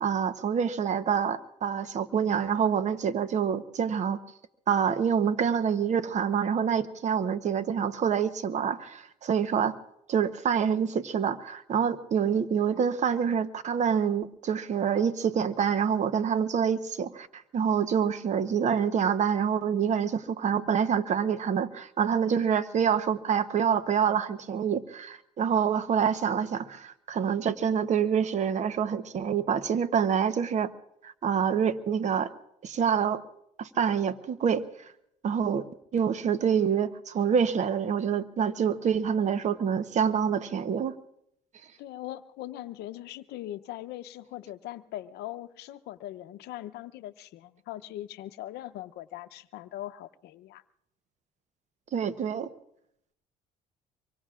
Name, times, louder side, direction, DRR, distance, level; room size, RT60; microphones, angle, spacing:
voice 1, 0.0-4.2 4.7-9.8 10.1-30.7 31.0-32.3 32.6-33.2 33.6-34.9 35.2-35.7 35.9-40.9 51.9-52.5, right 7 dB, 45° right, 12 dB, 0.9 m, -26 dB
voice 2, 41.8-50.6, left 14 dB, 80° left, 12 dB, 0.7 m, -40 dB
25.0 x 23.5 x 2.4 m, 0.76 s
cardioid pair, 110°, 17 cm